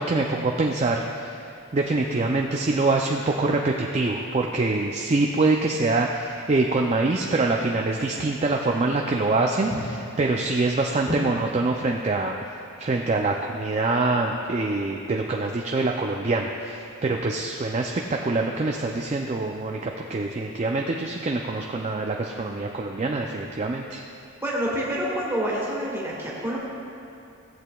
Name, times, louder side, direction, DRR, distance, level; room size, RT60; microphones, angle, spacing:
voice 1, 0.0-1.3 1.7-9.7 10.2-12.3 12.8-24.0, right 3 dB, 30° right, 1 dB, 0.4 m, -25 dB
voice 2, 24.4-26.6, equal, 10° right, -5 dB, 1.6 m, -27 dB
17.0 x 7.8 x 2.3 m, 2.7 s
head